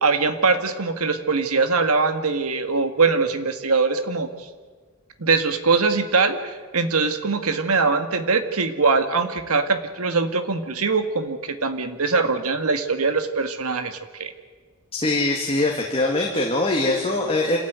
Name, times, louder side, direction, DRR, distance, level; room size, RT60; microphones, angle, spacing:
voice 1, 0.0-4.5 5.2-14.3, right 4 dB, 80° right, 8 dB, 1.7 m, -22 dB
voice 2, 14.9-17.6, left 2 dB, 25° left, 0 dB, 2.1 m, -22 dB
27.0 x 13.0 x 9.3 m, 1.4 s
head